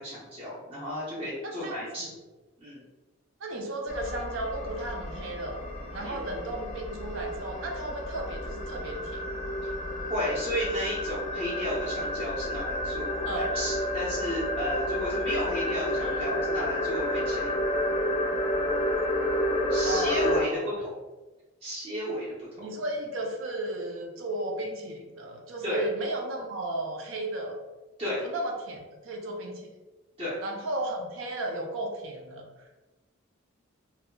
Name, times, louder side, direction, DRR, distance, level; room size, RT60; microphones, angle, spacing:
voice 1, 0.0-2.1 2.6-2.8 6.0-6.2 9.6-9.7 10.1-17.5 19.7-20.5 20.8-21.0 21.6-22.4 25.6-25.9 28.0-28.2 30.2-30.3, equal, 25° right, -9 dB, 0.6 m, -33 dB
voice 2, 1.4-2.1 3.4-5.6 5.9-9.2 13.2-13.5 16.0-16.3 19.8-20.7 22.6-27.6 28.2-29.7 30.4-32.8, right 1 dB, 65° right, 1 dB, 0.5 m, -34 dB
sound 1, 3.9-20.4, left 1 dB, 30° left, 0.4 m, -30 dB
2.2 x 2.0 x 3.6 m, 1.2 s
head